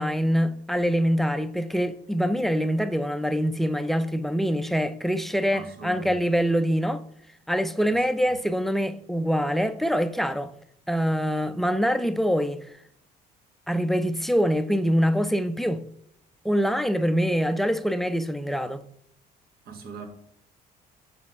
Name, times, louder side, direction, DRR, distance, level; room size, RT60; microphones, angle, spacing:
voice 1, 0.0-7.0 7.5-10.5 10.9-12.7 13.7-15.8 16.4-18.8, equal, ahead, 0.5 m, -24 dB
voice 2, 5.5-6.2 7.9-8.4 19.6-20.1, right 5 dB, 65° right, 1.6 m, -41 dB
7.1 x 4.2 x 5.4 m
cardioid pair, 110°, 17 cm